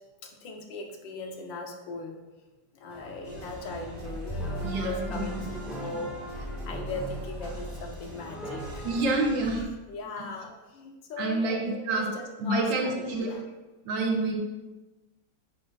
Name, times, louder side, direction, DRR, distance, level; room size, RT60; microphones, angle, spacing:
voice 1, 0.2-2.2 2.7-8.9 9.4-13.4, left 3 dB, 85° left, 3 dB, 1.7 m, -39 dB
sound 1, 2.9-9.1, right 1 dB, ahead, 1.3 m, -40 dB
sound 2, 3.2-9.6, equal, 65° right, 1.9 m, -40 dB
voice 2, 4.6-5.6 8.8-9.7 11.2-12.1 12.4-13.3 13.9-14.4, right 2 dB, 80° right, 1 dB, 1.8 m, -28 dB
9.6 x 6.4 x 2.4 m, 1.2 s
omnidirectional pair, 2.0 m